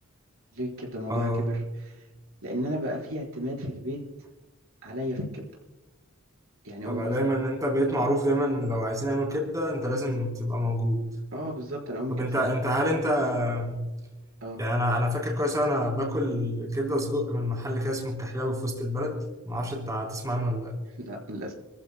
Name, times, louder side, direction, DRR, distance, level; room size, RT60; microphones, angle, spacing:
voice 1, 0.5-1.3 1.8-2.0 2.4-4.0 4.8-5.4 6.6-7.3 11.3-12.5 14.4-14.6 21.0-21.5, equal, 70° right, -1 dB, 4.4 m, -33 dB
voice 2, 1.1-1.6 6.9-11.1 12.1-13.9 14.6-19.2 19.4-20.8, equal, 15° right, 0 dB, 3.6 m, -27 dB
28.5 x 14.5 x 2.2 m, 1.1 s
head